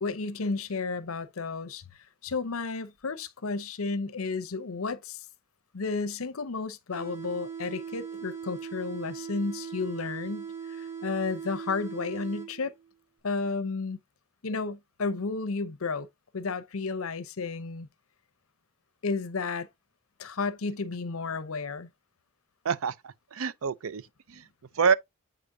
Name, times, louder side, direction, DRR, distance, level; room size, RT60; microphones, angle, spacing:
voice 1, 0.0-1.8 2.2-5.2 5.7-10.5 10.8-12.7 13.2-14.0 14.4-16.1 16.3-17.9 19.0-19.7 20.2-21.9, left 4 dB, 75° left, 0.8 m, -32 dB
sound 1, 6.9-12.9, right 7 dB, 35° right, 3.0 m, -39 dB
voice 2, 22.6-24.0 24.3-24.4 24.7-24.9, right 6 dB, 70° right, 0.5 m, -27 dB
7.9 x 5.0 x 2.6 m
head